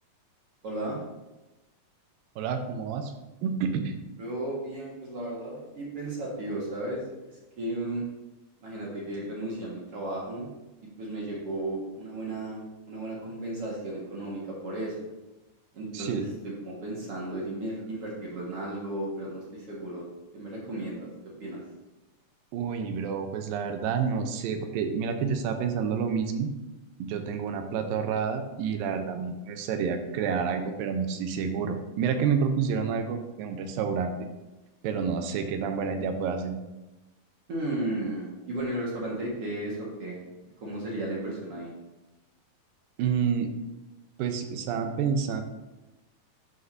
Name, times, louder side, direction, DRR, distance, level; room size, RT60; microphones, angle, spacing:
voice 1, 0.6-1.0 4.2-7.0 7.6-8.0 8.6-10.5 11.0-15.0 15.7-16.3 16.6-20.0 20.3-21.1 21.4-21.6 37.5-40.2 40.6-41.7, right 1 dB, 50° right, -4 dB, 2.2 m, -34 dB
voice 2, 2.4-3.1 3.4-4.0 15.9-16.3 22.5-26.5 27.0-34.1 34.8-36.5 43.0-43.5 44.2-45.4, right 6 dB, 85° right, 6 dB, 2.5 m, -29 dB
11.5 x 6.6 x 2.7 m, 1.0 s
omnidirectional pair, 4.1 m